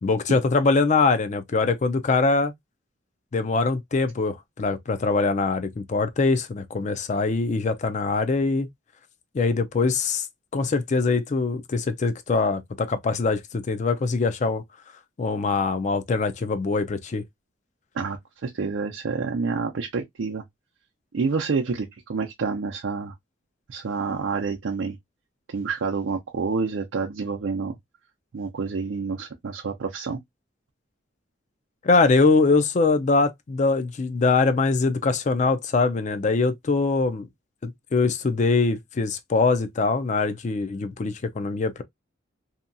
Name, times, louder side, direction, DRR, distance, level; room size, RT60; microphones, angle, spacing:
voice 1, 0.0-2.5 3.3-8.7 9.3-10.3 10.5-14.6 15.2-17.2 31.8-37.3 37.6-41.8, left 3 dB, 40° left, 0.4 m, -23 dB
voice 2, 17.9-20.4 21.1-23.1 23.7-25.0 25.5-27.8 28.3-30.2, right 4 dB, 85° right, 0.5 m, -28 dB
2.8 x 2.2 x 2.5 m
head